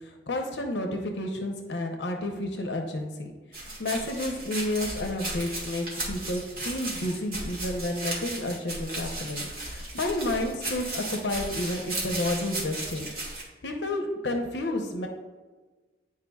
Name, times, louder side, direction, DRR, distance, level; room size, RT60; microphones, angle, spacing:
voice 1, 0.0-13.1 13.6-15.1, left 1 dB, 75° left, 3 dB, 0.8 m, -31 dB
sound 1, 3.5-13.4, right 2 dB, 50° right, 1.9 m, -35 dB
9.7 x 4.7 x 2.3 m, 1.3 s
head